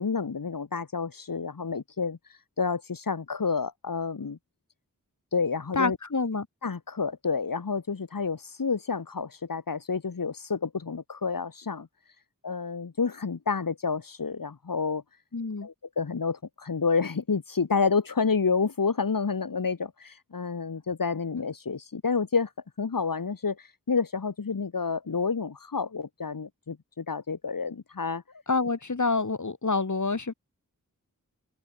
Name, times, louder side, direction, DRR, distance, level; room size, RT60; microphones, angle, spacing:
voice 1, 0.0-4.4 5.3-6.0 6.6-11.9 12.4-15.0 15.6-22.5 22.8-28.2, left 5 dB, 85° left, 2.2 m, -29 dB
voice 2, 5.7-6.5 15.3-15.7 28.5-30.3, left 3 dB, 60° left, 4.1 m, -27 dB
wide cardioid pair, 70°, 33 cm